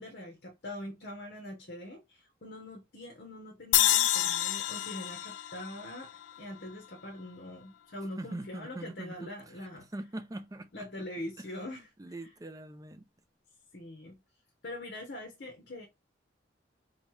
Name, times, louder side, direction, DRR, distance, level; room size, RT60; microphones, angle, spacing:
voice 1, 0.0-6.1 6.4-9.9 10.7-11.9 12.2-12.3 13.7-14.2 14.6-15.9, left 1 dB, 60° left, 1.0 m, -43 dB
sound 1, 3.7-7.0, left 13 dB, 75° left, 0.3 m, -29 dB
voice 2, 8.2-9.3 9.6-9.7 9.9-11.1 11.4-11.5 12.0-13.1, right 2 dB, 20° right, 0.5 m, -42 dB
3.8 x 3.1 x 3.2 m
head